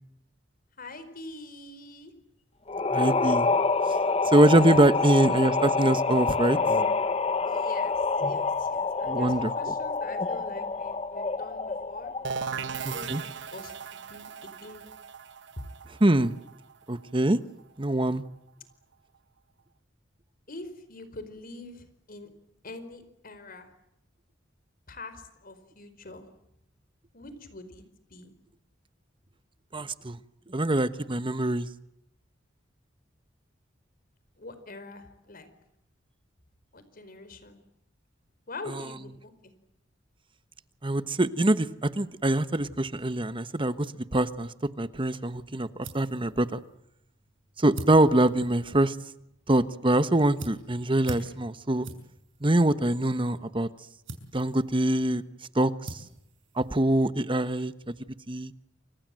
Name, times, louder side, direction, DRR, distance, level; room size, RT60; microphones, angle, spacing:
voice 1, 0.8-2.1 5.2-5.3 7.4-14.9 20.5-22.3 22.6-23.7 24.9-26.3 27.1-28.3 34.4-35.5 36.7-37.6 38.5-39.5, left 2 dB, 50° left, 11 dB, 4.7 m, -45 dB
sound 1, 2.7-12.4, left 4 dB, 30° left, 1.0 m, -27 dB
voice 2, 2.9-3.5 4.2-6.6 9.1-9.7 12.8-13.2 16.0-16.3 16.9-17.4 17.8-18.2 29.7-30.2 30.5-31.7 38.7-38.8 40.8-43.9 44.1-45.7 45.9-46.6 47.6-48.9 49.5-51.9 52.4-53.7 54.3-55.2 55.5-56.0 56.5-57.9 58.3-58.5, right 1 dB, 25° right, 13 dB, 1.2 m, -24 dB
sound 2, 12.2-17.8, right 6 dB, 65° right, 1.2 m, -38 dB
sound 3, 45.2-57.4, right 1 dB, 85° right, 6.0 m, -46 dB
29.0 x 25.5 x 7.7 m, 0.80 s
head